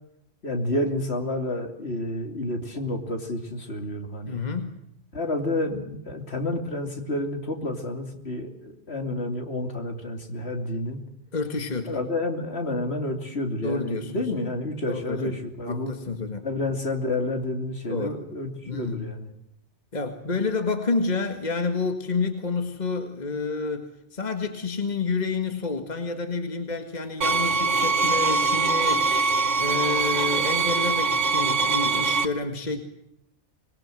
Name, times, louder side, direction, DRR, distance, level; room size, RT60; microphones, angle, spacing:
voice 1, 0.4-4.4 5.1-11.0 11.9-15.9 16.4-19.3, left 1 dB, 60° left, 5 dB, 3.1 m, -30 dB
voice 2, 4.3-4.7 11.3-12.0 13.6-14.2 14.9-15.4 15.6-16.4 17.9-18.2 18.6-19.1 19.9-29.1 29.6-32.8, left 4 dB, 35° left, 6 dB, 2.0 m, -29 dB
sound 1, 27.2-32.3, right 4 dB, 80° right, 1.6 m, -23 dB
25.5 x 21.0 x 7.7 m, 0.78 s
omnidirectional pair, 1.2 m